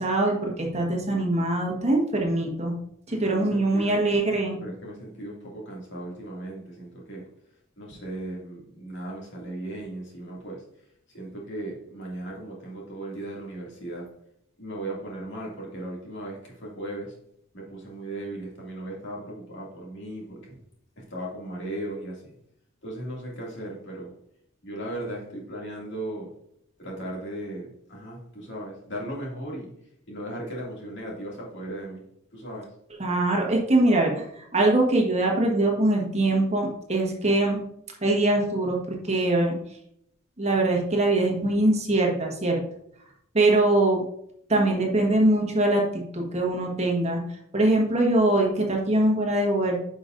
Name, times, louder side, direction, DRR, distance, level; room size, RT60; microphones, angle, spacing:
voice 1, 0.0-2.7 3.1-4.6 33.0-37.6 38.0-39.5 40.4-42.6 43.3-44.0 44.5-45.8 46.1-47.2 47.5-49.8, right 2 dB, 35° right, 0 dB, 1.4 m, -22 dB
voice 2, 3.1-4.0 4.6-7.3 7.8-10.6 11.1-14.1 14.6-17.1 17.5-20.5 21.0-22.3 22.8-24.1 24.6-26.3 26.8-29.7 30.1-32.0 32.3-32.7, right 1 dB, 60° left, -3 dB, 2.4 m, -37 dB
9.8 x 5.2 x 2.6 m, 0.72 s
head